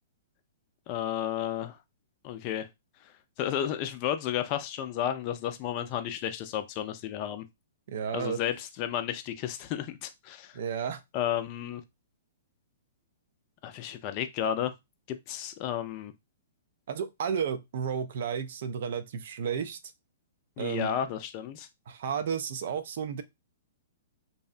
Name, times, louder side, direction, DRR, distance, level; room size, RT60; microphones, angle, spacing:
voice 1, 0.9-1.8 2.2-2.7 3.4-7.4 8.1-10.6 11.1-11.8 13.6-14.7 15.1-16.1 20.6-21.7, left 10 dB, 40° left, 0.4 m, -32 dB
voice 2, 7.9-8.4 10.5-11.0 16.9-19.8 20.6-20.9 21.9-23.2, right 7 dB, 60° right, 0.4 m, -32 dB
2.7 x 2.0 x 2.4 m
hypercardioid pair, 115°, 0 cm